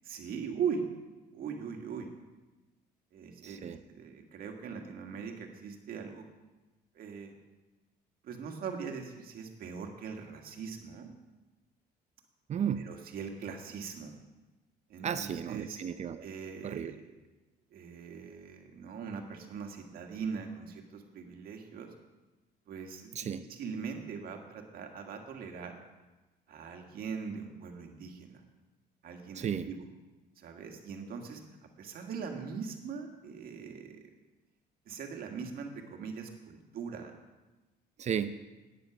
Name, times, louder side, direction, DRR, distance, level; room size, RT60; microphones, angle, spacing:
voice 1, 0.0-0.8 1.3-2.1 3.1-6.3 7.0-7.3 8.2-11.1 12.8-14.1 14.9-15.8 16.2-17.0 17.7-21.9 22.7-25.8 26.5-28.4 29.0-29.8 30.4-31.4 31.8-34.1 34.9-37.2, right 6 dB, 60° right, 3 dB, 1.8 m, -41 dB
voice 2, 3.4-3.8 12.5-12.8 15.0-16.3 16.6-16.9 23.1-23.4 29.3-29.7 38.0-38.3, right 8 dB, 40° right, 11 dB, 0.6 m, -34 dB
9.6 x 9.4 x 6.0 m, 1.1 s
cardioid pair, 110°, 17 cm